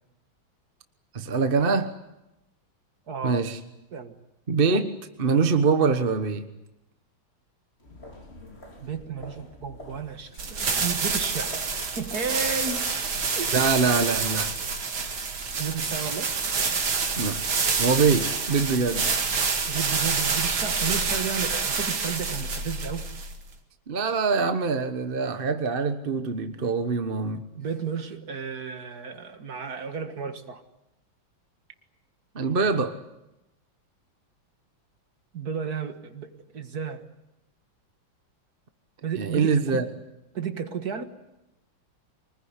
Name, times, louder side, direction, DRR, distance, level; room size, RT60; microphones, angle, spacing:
voice 1, 1.1-1.9 3.2-3.6 4.5-6.4 13.5-14.5 17.2-17.4 17.8-19.1 23.9-27.4 32.3-33.0 39.2-39.9, right 5 dB, 30° right, 8 dB, 1.2 m, -24 dB
voice 2, 3.1-3.4 3.9-4.2 8.8-11.6 12.0-12.9 13.4-13.6 15.6-16.3 19.7-23.1 27.6-30.6 35.3-37.1 39.0-39.9 40.3-41.0, right 6 dB, 50° right, 8 dB, 2.0 m, -33 dB
sound 1, 7.8-14.8, left 2 dB, 30° left, 3.8 m, -48 dB
sound 2, 10.4-23.5, right 5 dB, 85° right, 2.9 m, -27 dB
24.5 x 20.5 x 9.7 m, 0.91 s
omnidirectional pair, 2.2 m